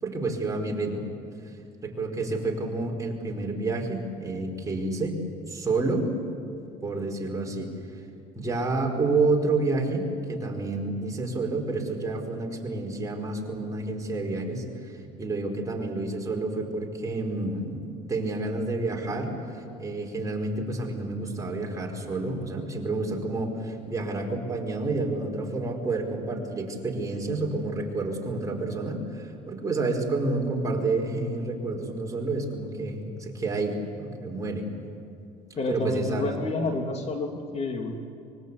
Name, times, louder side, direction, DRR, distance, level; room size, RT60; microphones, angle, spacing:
voice 1, 0.0-1.0 1.8-5.2 5.5-6.1 6.8-7.7 8.3-34.7 35.7-36.3, right 3 dB, 20° right, 0 dB, 4.6 m, -29 dB
voice 2, 35.5-37.9, left 3 dB, 40° left, 3 dB, 2.7 m, -29 dB
24.5 x 22.0 x 8.3 m, 2.4 s
cardioid pair, 105°, 17 cm